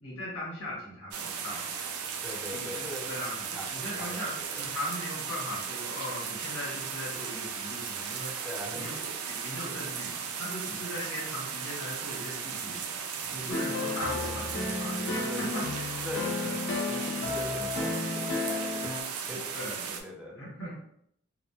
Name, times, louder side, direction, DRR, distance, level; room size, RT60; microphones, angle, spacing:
voice 1, 0.0-1.7 2.5-8.9 9.3-15.7 16.4-16.5 19.5-20.8, left 1 dB, 75° left, -5 dB, 1.1 m, -39 dB
sound 1, 1.1-20.0, right 7 dB, 90° right, 0.4 m, -36 dB
voice 2, 2.2-4.7 8.4-8.9 15.3-15.5 16.0-16.5 16.9-19.0 19.3-19.6 20.0-20.4, left 1 dB, 5° right, 0 dB, 0.3 m, -41 dB
sound 2, 13.5-19.0, left 3 dB, 55° left, 0.5 m, -33 dB
2.8 x 2.2 x 2.3 m, 0.71 s
head